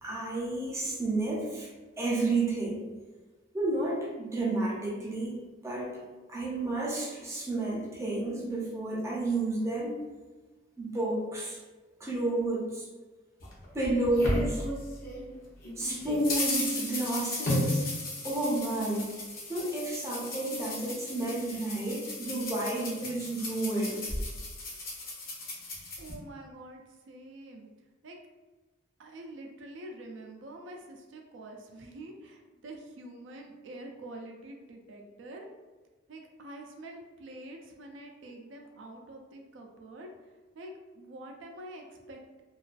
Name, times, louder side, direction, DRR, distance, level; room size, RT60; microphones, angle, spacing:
voice 1, 0.0-1.7 2.0-2.8 3.5-6.0 6.3-10.0 10.8-11.6 12.0-12.9 13.7-14.7 15.8-17.9 18.2-19.1 19.5-24.0, right 2 dB, 15° right, -4 dB, 0.5 m, -31 dB
sound 1, 13.4-15.3 15.6-26.1, left 1 dB, 50° left, 0.6 m, -35 dB
voice 2, 26.0-26.8 27.1-27.7 28.0-28.2 29.0-35.5 36.1-40.1 40.5-42.4, right 1 dB, 80° right, 1 dB, 0.4 m, -46 dB
2.3 x 2.3 x 2.4 m, 1.3 s
head